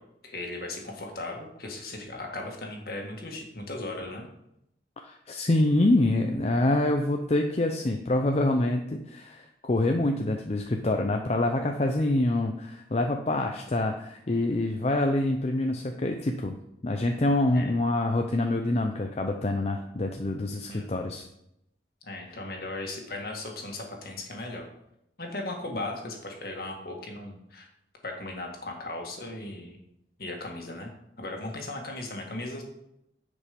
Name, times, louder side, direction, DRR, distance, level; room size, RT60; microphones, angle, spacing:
voice 1, 0.2-4.3 17.5-17.7 20.7-21.1 22.0-24.7 25.2-27.7 28.0-29.8 30.2-30.9 31.2-32.6, left 2 dB, 55° left, 1 dB, 1.8 m, -37 dB
voice 2, 5.0-16.5 16.8-21.3, left 2 dB, 35° left, 4 dB, 0.6 m, -26 dB
9.9 x 5.3 x 5.2 m, 0.80 s
head